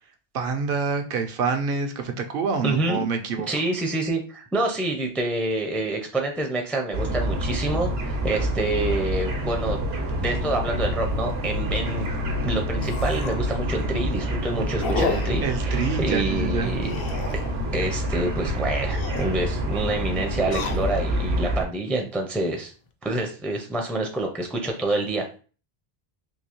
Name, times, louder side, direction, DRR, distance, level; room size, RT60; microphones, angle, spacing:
voice 1, 0.3-3.5 15.4-16.7, right 5 dB, 70° right, 5 dB, 0.7 m, -27 dB
voice 2, 2.6-3.1 3.5-9.8 10.2-12.1 12.4-16.9 17.7-22.7 23.0-25.4, right 2 dB, ahead, 2 dB, 0.4 m, -27 dB
sound 1, 6.9-21.7, equal, 85° right, 1.1 m, -27 dB
sound 2, 11.1-11.2 11.7-11.8 12.0-12.1 12.8-13.5 13.9-14.2 14.8-15.5 16.8-17.6 18.7-19.3 20.3-21.2 21.8-22.4, left 5 dB, 70° left, 0.7 m, -32 dB
3.7 x 2.7 x 3.0 m, 0.37 s
omnidirectional pair, 1.0 m